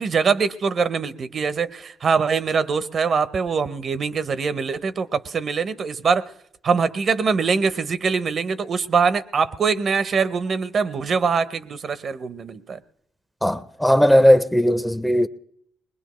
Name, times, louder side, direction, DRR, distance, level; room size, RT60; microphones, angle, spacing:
voice 1, 0.0-6.3 6.6-12.8, right 5 dB, 50° right, 0.7 m, -23 dB
voice 2, 13.4-15.3, equal, 5° left, 0.6 m, -17 dB
21.0 x 20.0 x 3.1 m
cardioid pair, 90°, 0 cm